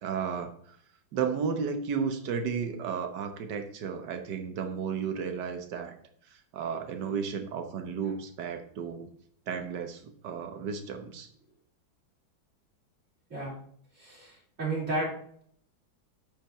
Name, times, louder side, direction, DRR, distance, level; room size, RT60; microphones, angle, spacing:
voice 1, 0.0-0.8 1.1-6.0 6.3-9.1 9.5-11.3, right 6 dB, 65° right, 7 dB, 1.6 m, -33 dB
voice 2, 13.9-15.1, right 2 dB, 40° right, -8 dB, 4.1 m, -32 dB
8.7 x 5.7 x 4.3 m, 0.62 s
omnidirectional pair, 2.1 m